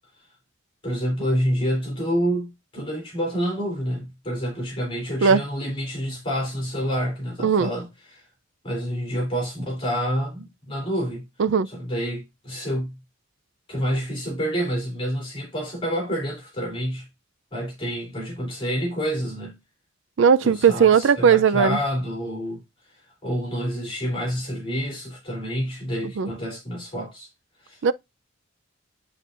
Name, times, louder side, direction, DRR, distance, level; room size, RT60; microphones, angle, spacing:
voice 1, 0.8-8.3 8.6-11.2 11.7-13.0 13.7-17.1 17.5-19.6 20.4-22.6 23.2-27.3 27.6-27.8, equal, 25° left, 3.0 m, -28 dB
voice 2, 20.2-21.8 26.2-26.3 27.8-27.9, right 6 dB, 65° right, 0.4 m, -17 dB
10.0 x 4.0 x 2.5 m
head